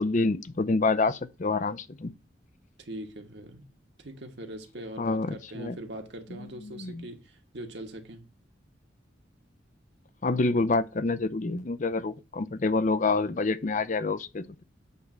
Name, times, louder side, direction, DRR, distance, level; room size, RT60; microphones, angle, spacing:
voice 1, 0.0-2.1 5.0-5.8 6.8-7.1 10.2-14.6, left 3 dB, 40° left, 0.5 m, -27 dB
voice 2, 2.8-3.7 4.0-8.2, right 1 dB, 60° right, 1.4 m, -41 dB
8.2 x 3.3 x 6.0 m
head